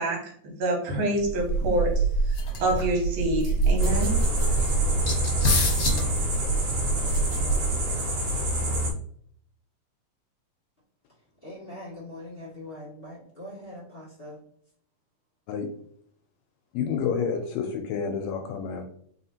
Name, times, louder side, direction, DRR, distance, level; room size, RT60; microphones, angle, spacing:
voice 1, 0.0-4.3, right 1 dB, 80° right, -1 dB, 2.6 m, -27 dB
sound 1, 1.2-7.9, right 2 dB, 50° left, 1.5 m, -25 dB
sound 2, 3.8-8.9, equal, 65° right, 2.3 m, -28 dB
voice 2, 11.4-14.4, left 1 dB, 25° left, -8 dB, 1.7 m, -42 dB
voice 3, 16.7-18.8, left 6 dB, 80° left, 4 dB, 1.7 m, -29 dB
4.1 x 4.0 x 2.8 m, 0.63 s
omnidirectional pair, 3.4 m